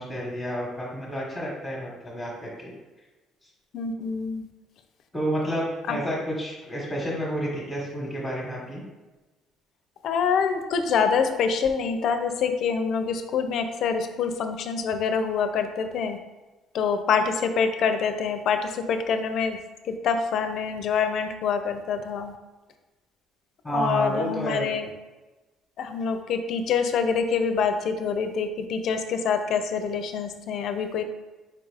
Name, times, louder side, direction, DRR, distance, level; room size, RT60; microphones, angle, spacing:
voice 1, 0.0-2.7 3.4-3.5 5.1-8.8 23.6-24.7, equal, 5° left, -5 dB, 1.0 m, -30 dB
voice 2, 3.7-4.5 5.9-6.0 10.0-16.2 16.7-19.6 19.8-22.3 23.7-24.9 25.8-31.0, left 6 dB, 55° left, 7 dB, 0.4 m, -26 dB
4.7 x 2.4 x 4.7 m, 1.2 s
cardioid pair, 130°, 0 cm